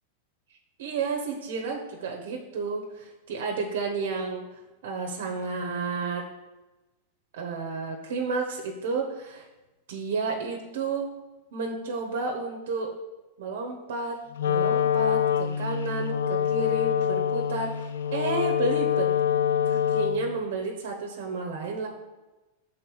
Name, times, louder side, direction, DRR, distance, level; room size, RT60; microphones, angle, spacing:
voice 1, 0.8-6.2 7.3-9.5 9.9-11.1 11.5-12.9 13.4-14.2 14.4-17.7 18.1-19.1 19.6-21.9, right 4 dB, 65° right, 1 dB, 1.0 m, -31 dB
Wind instrument woodwind instrument, 14.3-20.4, left 9 dB, 90° left, 0.4 m, -25 dB
6.5 x 3.8 x 6.2 m, 1.1 s
supercardioid pair, 170°, 0 cm